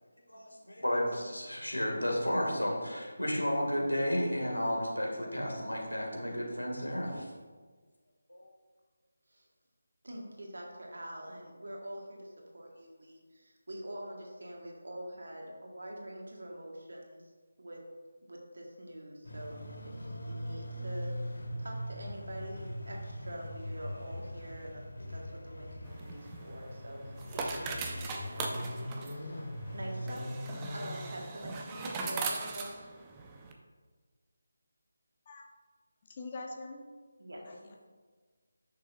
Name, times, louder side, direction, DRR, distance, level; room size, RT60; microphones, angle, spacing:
voice 1, 0.3-7.3 8.3-8.5, equal, 90° left, -2 dB, 2.2 m, -32 dB
voice 2, 10.0-17.3 17.6-17.8 18.2-28.5 28.9-29.5 29.7-30.3 30.7-32.7 37.2-37.7, right 1 dB, 65° right, 0 dB, 1.6 m, -45 dB
sound 1, 19.2-31.0, equal, 60° left, 1.6 m, -41 dB
sound 2, 25.9-33.5, right 4 dB, 15° right, 0.6 m, -40 dB
voice 3, 36.1-36.8 37.4-37.9, left 3 dB, 30° left, 1 dB, 0.9 m, -44 dB
10.0 x 6.3 x 2.6 m, 1.5 s
figure-of-eight pair, 160°, 0 cm